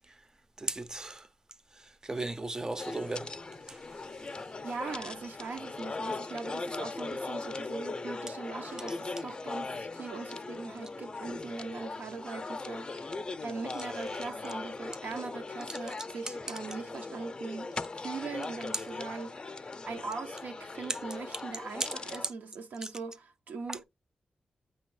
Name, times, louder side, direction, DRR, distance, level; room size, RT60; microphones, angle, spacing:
voice 1, 0.6-1.3 1.8-3.4 3.7-3.8 20.9-21.0 21.8-21.9 23.7-23.8, right 2 dB, 20° right, 0.5 m, -35 dB
sound 1, 2.8-22.3, left 3 dB, 30° left, 0.5 m, -39 dB
voice 2, 4.6-23.8, right 4 dB, 85° right, 0.9 m, -41 dB
8.8 x 3.3 x 4.7 m
wide cardioid pair, 105°, 3 cm